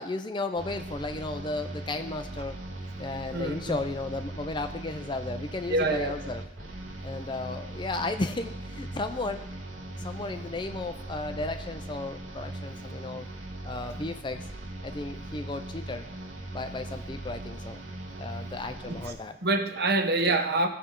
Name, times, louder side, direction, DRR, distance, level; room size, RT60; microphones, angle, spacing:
voice 1, 0.0-2.6 3.0-6.4 7.0-9.5 10.0-13.3 13.6-14.5 14.8-16.1 16.5-17.8 18.2-19.4, left 2 dB, 20° left, 8 dB, 0.4 m, -34 dB
sound 1, 0.6-19.1, right 1 dB, 70° right, 1.6 m, -40 dB
voice 2, 3.3-3.8 5.7-6.1 18.9-19.0 19.4-20.7, right 2 dB, 50° right, 7 dB, 0.8 m, -26 dB
15.0 x 5.6 x 3.7 m, 0.80 s
head